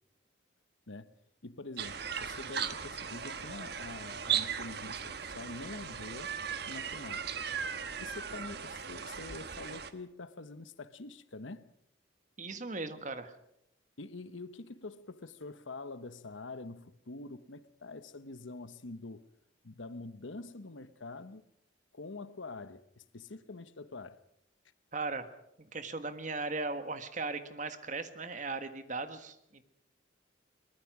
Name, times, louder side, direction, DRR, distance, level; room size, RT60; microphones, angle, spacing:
voice 1, 1.4-6.3 6.7-7.3 8.0-11.7 14.0-19.3 19.6-21.4 21.9-24.2, left 3 dB, 85° left, 1.1 m, -45 dB
sound 1, 1.8-9.9, right 7 dB, 55° right, 1.3 m, -37 dB
voice 2, 12.4-13.3 24.9-25.3 25.7-29.6, right 3 dB, 40° right, 1.6 m, -38 dB
23.0 x 20.0 x 6.1 m
head